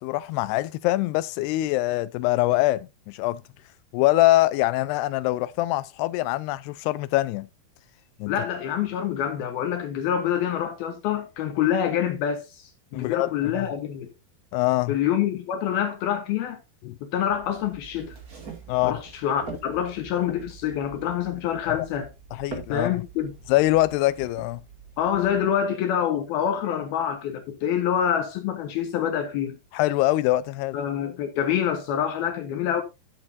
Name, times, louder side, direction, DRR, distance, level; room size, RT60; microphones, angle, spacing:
voice 1, 0.0-3.4 3.9-7.5 8.2-8.3 12.9-13.7 14.5-15.0 16.8-17.0 18.7-19.0 21.6-21.9 22.4-22.9 23.5-24.6 29.7-30.8, left 17 dB, 90° left, 2.7 m, -24 dB
voice 2, 8.3-14.1 14.9-16.6 17.0-18.1 18.8-22.1 22.7-23.3 25.0-29.6 30.7-32.8, left 9 dB, 75° left, 3.1 m, -26 dB
sound 1, 17.3-25.4, right 4 dB, 25° right, 2.3 m, -44 dB
13.0 x 7.7 x 2.7 m
omnidirectional pair, 4.6 m